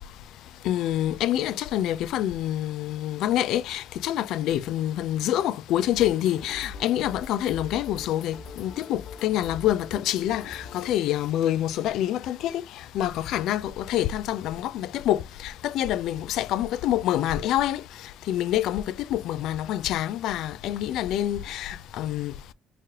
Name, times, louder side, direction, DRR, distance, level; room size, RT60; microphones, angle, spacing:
voice 1, 0.6-12.6 12.9-17.8 18.3-22.3, left 12 dB, 80° left, 0.3 m, -26 dB
sound 1, 5.9-10.9, left 4 dB, 60° left, 0.8 m, -42 dB
3.1 x 2.9 x 3.5 m
supercardioid pair, 80°, 0 cm